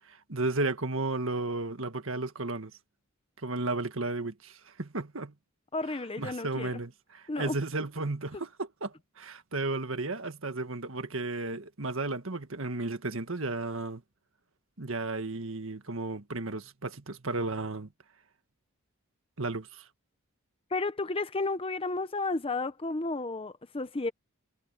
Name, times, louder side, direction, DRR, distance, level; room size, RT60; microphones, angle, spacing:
voice 1, 0.0-2.7 3.4-5.3 6.2-14.0 14.8-17.9 19.4-19.9, right 2 dB, 65° right, 1.7 m, -34 dB
voice 2, 5.7-6.7 7.3-7.6 20.7-24.1, left 3 dB, 25° left, 0.7 m, -32 dB
head